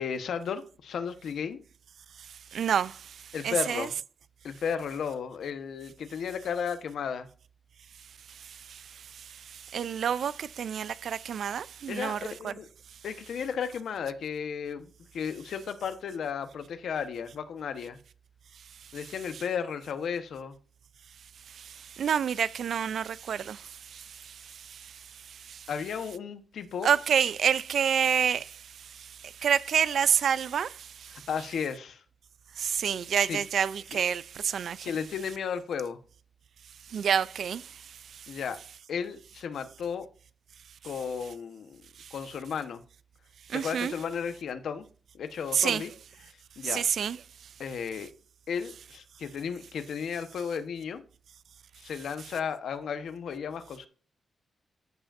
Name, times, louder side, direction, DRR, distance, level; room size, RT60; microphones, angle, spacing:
voice 1, 0.0-1.6 3.3-3.9 4.4-7.3 11.9-12.7 13.0-18.0 18.9-20.6 25.7-26.9 31.3-32.0 33.3-33.4 33.9-34.0 34.8-36.0 38.3-38.6 38.9-40.1 40.8-41.8 42.1-42.8 43.5-44.8 45.1-45.9 46.6-46.8 47.6-48.1 48.5-51.0 51.8-53.9, left 7 dB, 70° left, 1.0 m, -34 dB
voice 2, 2.2-3.9 8.3-12.5 19.3-19.4 21.5-25.7 26.8-31.3 32.6-34.9 36.9-38.4 42.0-42.1 43.5-43.9 45.5-45.8 46.6-47.2, right 8 dB, 65° right, 0.3 m, -29 dB
14.0 x 5.1 x 2.5 m
wide cardioid pair, 180°, 0 cm